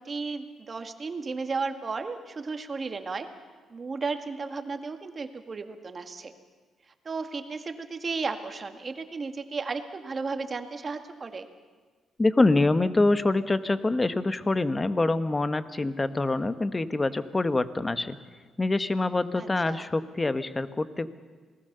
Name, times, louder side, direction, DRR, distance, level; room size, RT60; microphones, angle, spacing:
voice 1, 0.0-3.3 3.7-6.3 7.1-11.5 19.4-19.9, right 4 dB, 35° right, 7 dB, 2.0 m, -34 dB
voice 2, 12.2-18.2 18.6-21.1, left 2 dB, 20° left, 12 dB, 1.2 m, -25 dB
27.5 x 19.0 x 6.8 m, 1.4 s
cardioid pair, 90°, 0 cm